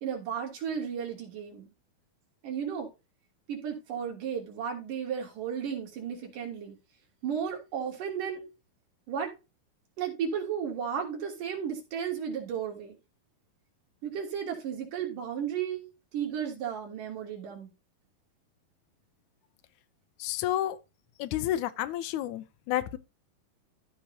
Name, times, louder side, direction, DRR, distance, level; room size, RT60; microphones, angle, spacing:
voice 1, 0.0-1.7 2.4-2.9 3.5-6.8 7.2-8.4 9.1-9.3 10.0-13.0 14.0-15.8 16.1-17.7, right 7 dB, 60° right, 4.4 m, -34 dB
voice 2, 20.2-20.8 21.2-23.0, left 13 dB, 90° left, 1.7 m, -30 dB
14.5 x 6.0 x 2.8 m
omnidirectional pair, 4.4 m